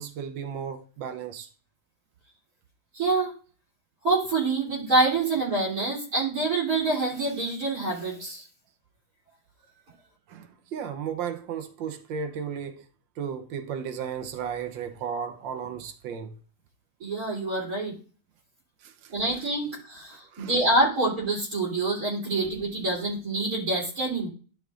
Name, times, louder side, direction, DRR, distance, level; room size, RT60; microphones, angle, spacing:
voice 1, 0.0-1.5 10.3-12.9 13.2-16.4 18.8-19.8 20.1-20.8 22.3-22.7, right 7 dB, 85° right, 1.6 m, -35 dB
voice 2, 2.9-3.3 4.0-8.5 17.0-17.9 19.1-24.3, right 2 dB, 50° right, 3.7 m, -26 dB
12.5 x 5.8 x 2.5 m
omnidirectional pair, 2.0 m